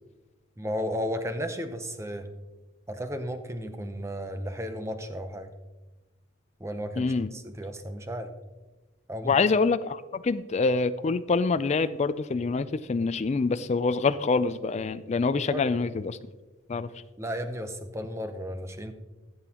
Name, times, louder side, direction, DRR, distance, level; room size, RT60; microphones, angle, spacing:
voice 1, 0.6-2.3 2.9-5.5 6.6-8.3 9.1-9.4 15.3-15.7 17.2-18.9, equal, 15° right, 8 dB, 0.6 m, -34 dB
voice 2, 7.0-7.3 9.2-16.2 16.7-16.9, left 4 dB, 30° left, 12 dB, 0.3 m, -26 dB
15.0 x 8.0 x 2.9 m, 1.2 s
head